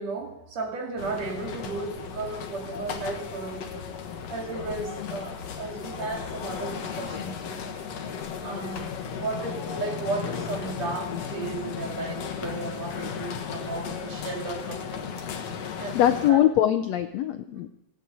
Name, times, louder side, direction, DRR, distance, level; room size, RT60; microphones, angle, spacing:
voice 1, 0.0-3.9 4.3-7.8 8.4-8.9 9.1-15.1 15.8-16.0 16.3-16.4, right 3 dB, 55° right, 2 dB, 3.5 m, -34 dB
sound 1, 1.0-16.3, left 7 dB, 60° left, 2.3 m, -35 dB
voice 2, 15.9-17.7, left 12 dB, 75° left, 9 dB, 1.6 m, -22 dB
17.0 x 9.4 x 8.7 m, 0.84 s
omnidirectional pair, 3.8 m